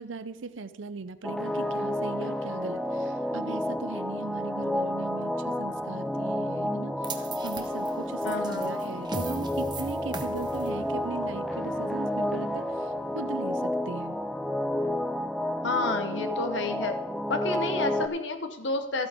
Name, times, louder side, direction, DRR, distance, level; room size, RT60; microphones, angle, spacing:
voice 1, 0.0-14.1 17.6-17.7, right 4 dB, 80° right, 13 dB, 0.6 m, -39 dB
sound 1, 1.2-18.1, left 1 dB, ahead, 0.3 m, -30 dB
sound 2, 7.0-13.3, right 3 dB, 20° right, 0.7 m, -41 dB
voice 2, 8.2-8.8 15.6-17.0 17.3-19.1, left 3 dB, 70° left, 7 dB, 1.0 m, -30 dB
14.0 x 8.7 x 3.5 m, 1.1 s
head